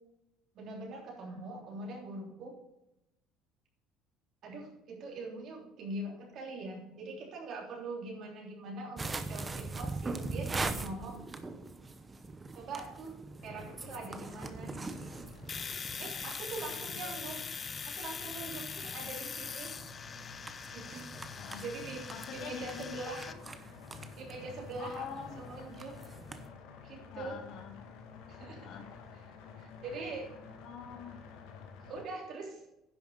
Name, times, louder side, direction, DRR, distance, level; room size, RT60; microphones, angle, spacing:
voice 1, 0.5-2.6 4.4-11.2 12.5-13.1 13.4-14.8 16.0-17.4 17.9-19.7 20.7-21.1 21.6-23.3 24.2-26.0 26.8-27.4 28.3-28.8 29.6-30.3 31.8-32.6, right 3 dB, 55° right, -1 dB, 3.3 m, -43 dB
voice 2, 1.2-1.5 16.9-17.2 18.9-19.1 21.4-21.7 22.1-23.5 24.8-25.4 27.1-28.0 28.6-28.9 30.6-31.2, left 7 dB, 55° left, 4 dB, 1.6 m, -46 dB
sound 1, 9.0-26.5, right 3 dB, 20° right, 0.8 m, -43 dB
sound 2, 13.4-32.0, left 6 dB, 85° left, 1.9 m, -52 dB
Domestic sounds home sounds, 15.5-23.3, left 6 dB, 30° left, 0.5 m, -42 dB
10.5 x 5.9 x 5.4 m, 0.88 s
cardioid pair, 115°, 0 cm